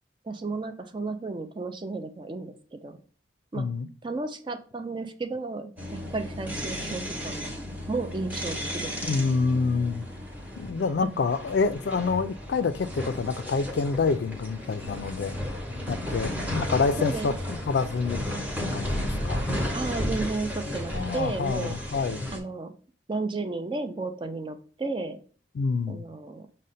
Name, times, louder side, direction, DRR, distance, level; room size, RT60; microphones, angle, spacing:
voice 1, 0.2-3.0 3.5-3.7 4.0-7.6 7.9-9.2 16.2-16.3 17.0-17.3 19.7-21.8 22.3-22.8 23.1-25.2 25.9-26.5, right 3 dB, 25° right, 0.4 m, -33 dB
voice 2, 3.5-3.9 9.0-10.0 10.6-15.4 15.9-18.2 18.7-19.4 20.9-22.3 25.6-26.0, left 4 dB, 65° left, 0.3 m, -27 dB
sound 1, 5.8-22.4, left 1 dB, 10° right, 0.9 m, -33 dB
6.3 x 2.1 x 4.0 m
head